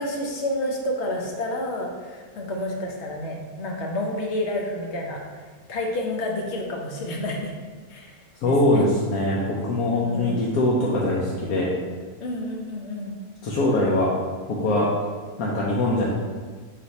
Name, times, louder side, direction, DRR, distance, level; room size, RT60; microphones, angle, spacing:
voice 1, 0.0-7.5 7.9-8.2 8.4-8.9 9.9-10.4 12.2-13.2, left 1 dB, 60° left, 0 dB, 0.8 m, -30 dB
voice 2, 8.4-11.7 13.4-14.1 14.5-14.9 15.4-16.1, left 1 dB, 85° left, -5 dB, 1.1 m, -22 dB
4.3 x 2.5 x 4.0 m, 1.5 s
omnidirectional pair, 1.5 m